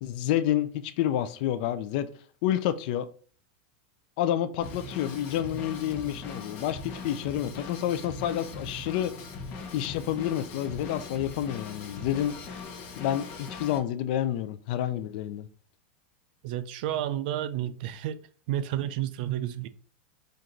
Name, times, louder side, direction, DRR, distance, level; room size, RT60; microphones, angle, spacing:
voice 1, 0.0-2.1 2.4-3.1 4.2-9.1 9.7-12.4 13.0-15.5, left 11 dB, 55° left, 0.5 m, -29 dB
Drum kit / Drum, 4.6-13.8, left 4 dB, 40° left, 1.0 m, -40 dB
voice 2, 16.4-18.2 18.5-19.7, right 12 dB, 55° right, 0.4 m, -31 dB
4.5 x 2.6 x 3.7 m
supercardioid pair, 150°, 6 cm